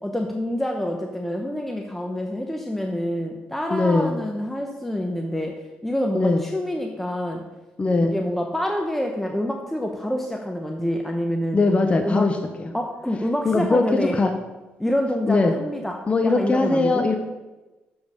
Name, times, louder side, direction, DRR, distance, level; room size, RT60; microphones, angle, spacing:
voice 1, 0.0-5.6 5.8-7.4 8.0-11.6 12.0-12.3 12.7-14.2 14.8-17.1, equal, 5° left, 2 dB, 0.9 m, -27 dB
voice 2, 3.7-4.2 6.1-6.4 7.8-8.2 11.5-12.4 13.4-13.8 14.1-14.3 15.3-15.5 16.1-17.2, left 3 dB, 30° left, 5 dB, 0.9 m, -20 dB
7.0 x 5.3 x 6.3 m, 1.1 s
cardioid pair, 75°, 4 cm